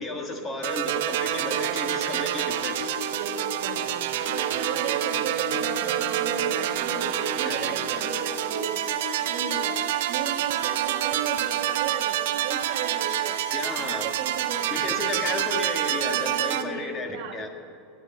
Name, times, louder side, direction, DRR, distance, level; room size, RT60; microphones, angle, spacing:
voice 1, 0.0-2.9 7.4-8.1 13.5-14.1 14.7-17.5, left 2 dB, 15° left, 4 dB, 1.6 m, -33 dB
sound 1, 0.6-16.6, right 12 dB, 70° right, 0.9 m, -27 dB
sound 2, 1.3-10.0, left 7 dB, 65° left, 1.3 m, -40 dB
voice 2, 3.1-3.8 4.3-8.8 9.2-9.8 10.1-13.4 13.8-15.3 16.0-16.9 17.1-17.4, right 6 dB, 45° right, -2 dB, 1.4 m, -35 dB
18.0 x 10.0 x 8.0 m, 2.6 s
supercardioid pair, 170°, 0 cm